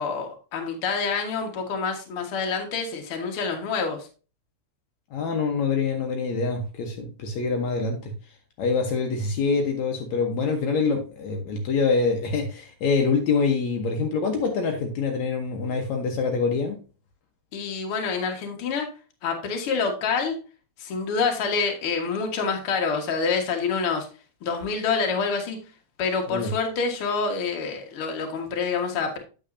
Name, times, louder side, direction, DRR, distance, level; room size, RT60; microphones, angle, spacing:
voice 1, 0.0-4.1 17.5-18.9 19.2-20.4 20.8-24.1 24.4-25.6 26.0-29.2, left 5 dB, 50° left, 2 dB, 2.3 m, -27 dB
voice 2, 5.1-8.1 8.6-16.8 26.3-26.5, left 4 dB, 70° left, 2 dB, 2.4 m, -25 dB
9.1 x 7.9 x 2.7 m, 0.34 s
omnidirectional pair, 3.4 m